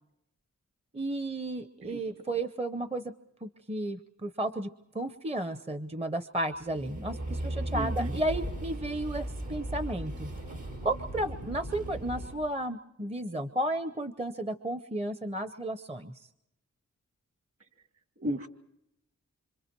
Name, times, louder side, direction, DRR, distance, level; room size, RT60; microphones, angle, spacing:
voice 1, 0.9-3.1 3.4-4.7 4.9-10.3 10.8-16.3, right 1 dB, 20° right, 11 dB, 0.8 m, -33 dB
sound 1, 6.5-12.3, right 1 dB, 75° right, 7.7 m, -36 dB
voice 2, 7.7-8.2 18.2-18.5, equal, 45° right, 7 dB, 2.2 m, -33 dB
26.5 x 25.5 x 4.6 m, 0.81 s
wide cardioid pair, 80°, 30 cm